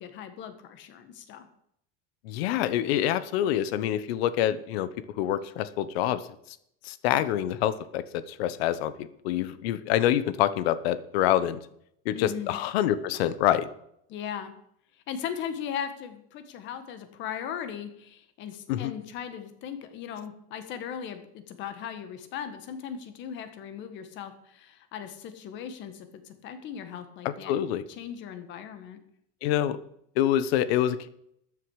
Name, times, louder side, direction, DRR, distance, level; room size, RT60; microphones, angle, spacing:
voice 1, 0.0-1.5 12.1-12.6 14.1-14.5 15.1-27.7 28.0-29.0, left 8 dB, 40° left, 9 dB, 1.6 m, -38 dB
voice 2, 2.2-4.9 5.2-6.2 6.8-11.6 12.0-13.7 18.7-18.9 27.2-27.8 29.4-29.8 30.2-31.1, left 12 dB, 90° left, 15 dB, 1.1 m, -26 dB
13.5 x 9.8 x 4.9 m, 0.72 s
cardioid pair, 175°, 30 cm